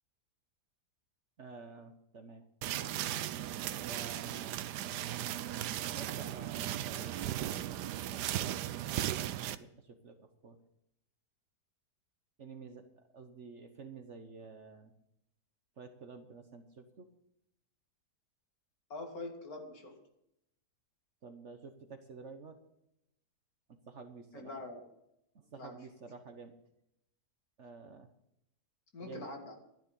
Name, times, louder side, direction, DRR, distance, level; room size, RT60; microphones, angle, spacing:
voice 1, 1.4-2.5 3.6-4.5 5.8-7.2 7.6-9.1 9.5-10.6 12.4-12.9 13.1-14.9 15.8-17.1 21.2-22.6 23.7-24.5 25.3-26.5 27.6-28.1 29.0-29.3, right 4 dB, 50° right, 7 dB, 1.3 m, -50 dB
sound 1, 2.6-9.6, right 12 dB, 80° right, 1.2 m, -37 dB
voice 2, 18.9-20.0 24.3-24.9 25.6-25.9 28.9-29.6, left 2 dB, 60° left, 3 dB, 2.7 m, -44 dB
12.5 x 10.5 x 5.5 m, 0.80 s
omnidirectional pair, 1.8 m